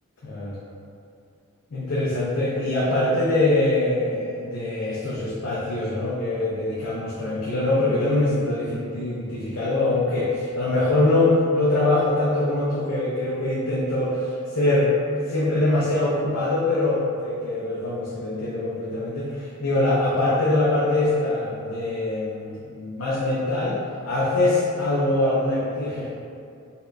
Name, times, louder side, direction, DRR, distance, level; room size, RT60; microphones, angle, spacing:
voice 1, 0.2-0.6 1.7-23.8 24.0-26.1, left 2 dB, 75° left, -7 dB, 0.5 m, -23 dB
4.1 x 2.2 x 2.4 m, 2.5 s
head